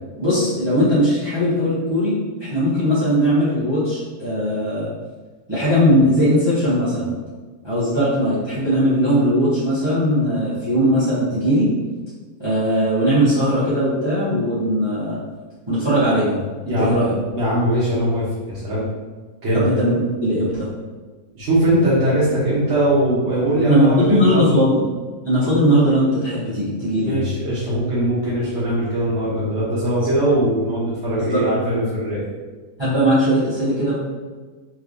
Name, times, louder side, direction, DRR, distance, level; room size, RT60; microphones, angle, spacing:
voice 1, 0.2-4.9 5.5-7.1 7.6-11.7 12.4-15.2 15.7-16.4 16.8-17.2 19.5-19.9 20.2-20.7 23.7-24.8 25.2-27.3 31.3-31.4 32.8-33.9, equal, 20° right, -12 dB, 1.0 m, -19 dB
voice 2, 16.7-17.0 17.3-18.9 19.4-19.7 21.4-24.6 27.0-32.2, right 1 dB, 50° right, -10 dB, 1.1 m, -20 dB
3.3 x 3.2 x 2.5 m, 1.3 s
omnidirectional pair, 1.6 m